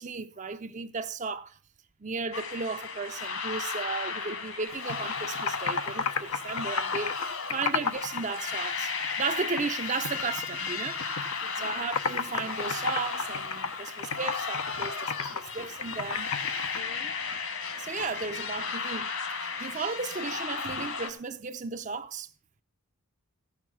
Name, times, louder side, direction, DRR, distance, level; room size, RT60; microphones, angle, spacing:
voice 1, 0.0-1.6 2.0-8.9 9.2-16.3 17.8-19.1 19.6-22.3, right 4 dB, 35° right, 0.6 m, -35 dB
sound 1, 2.3-21.1, left 5 dB, 65° left, 2.1 m, -35 dB
Computer keyboard, 4.7-8.2 8.5-9.7 10.0-11.3 11.6-16.8, left 5 dB, 85° left, 1.1 m, -32 dB
voice 2, 11.4-11.8 14.7-14.9 15.5-15.7 16.0-16.1 16.7-17.2, left 3 dB, 40° left, 0.8 m, -50 dB
15.0 x 6.6 x 6.1 m
head